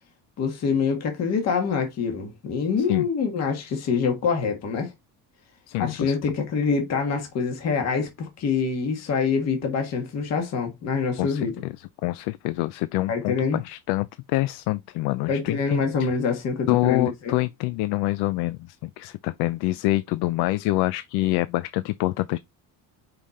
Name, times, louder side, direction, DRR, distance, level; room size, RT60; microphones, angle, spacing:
voice 1, 0.4-4.9 5.8-11.5 13.1-13.6 15.3-17.3, left 5 dB, 40° left, 1.6 m, -25 dB
voice 2, 5.7-6.2 11.2-16.1 16.7-22.4, left 18 dB, 80° left, 0.5 m, -26 dB
5.6 x 5.0 x 4.1 m
cardioid pair, 175°, 38 cm